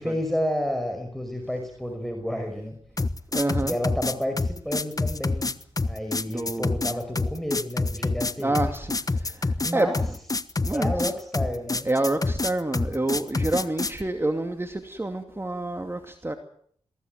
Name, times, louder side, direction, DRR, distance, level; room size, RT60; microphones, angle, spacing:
voice 1, 0.0-2.8 3.6-5.6 5.9-8.5 9.6-10.0 10.7-11.9, equal, ahead, 5 dB, 5.3 m, -30 dB
sound 1, 3.0-14.0, left 3 dB, 35° left, 1.3 m, -27 dB
voice 2, 3.3-3.8 6.3-7.0 8.4-10.2 10.7-11.1 11.8-16.3, right 2 dB, 20° right, 6 dB, 2.6 m, -28 dB
23.0 x 16.5 x 9.2 m, 0.62 s
cardioid pair, 50°, 11 cm